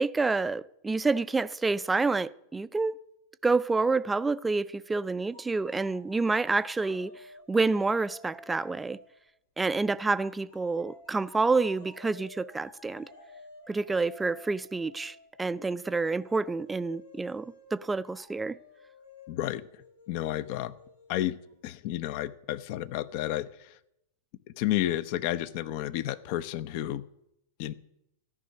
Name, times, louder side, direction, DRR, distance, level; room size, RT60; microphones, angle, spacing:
voice 1, 0.0-3.0 3.4-7.1 7.5-9.0 9.6-13.1 13.7-18.6, right 3 dB, 10° right, 0.4 m, -28 dB
sound 1, 5.3-9.2 10.2-21.5, left 2 dB, 80° left, 3.8 m, -53 dB
voice 2, 19.3-19.6 20.1-20.7 21.1-21.4 21.6-23.7 24.6-27.0 27.6-27.7, left 13 dB, 50° left, 0.7 m, -31 dB
13.5 x 6.2 x 9.4 m
figure-of-eight pair, 95°, 0 cm